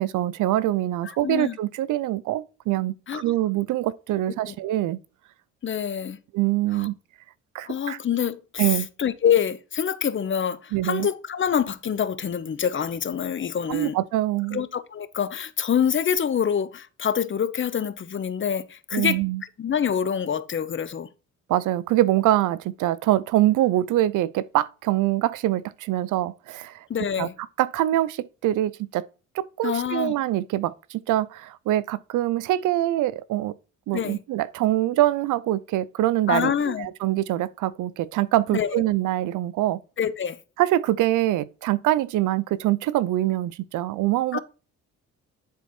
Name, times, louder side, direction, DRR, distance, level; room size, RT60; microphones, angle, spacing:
voice 1, 0.0-5.0 6.3-6.9 7.5-8.0 8.6-8.9 10.7-11.1 13.7-14.6 18.9-19.4 21.5-26.8 27.2-27.3 27.6-29.0 29.3-33.5 33.9-39.8 40.6-44.4, right 14 dB, 85° right, 0.6 m, -24 dB
voice 2, 1.2-1.6 3.1-3.2 4.5-4.6 5.6-6.2 6.7-6.9 7.6-14.0 14.5-19.2 19.6-21.1 26.9-27.3 29.6-30.1 33.9-34.2 36.3-36.9 38.5-38.8 40.0-40.4 44.3-44.4, left 8 dB, 40° left, 0.9 m, -26 dB
10.5 x 4.2 x 4.4 m
cardioid pair, 90°, 30 cm